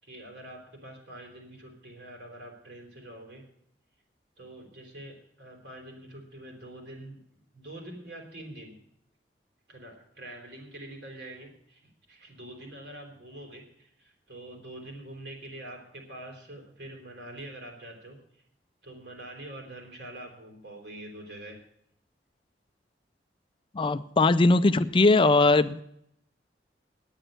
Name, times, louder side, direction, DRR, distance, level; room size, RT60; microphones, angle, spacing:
voice 1, 0.0-3.4 4.4-8.8 9.7-18.2 18.8-21.6, right 1 dB, 70° right, 1 dB, 4.1 m, -45 dB
voice 2, 23.7-25.8, left 3 dB, 30° left, 13 dB, 0.4 m, -20 dB
10.0 x 9.0 x 9.0 m, 0.74 s
head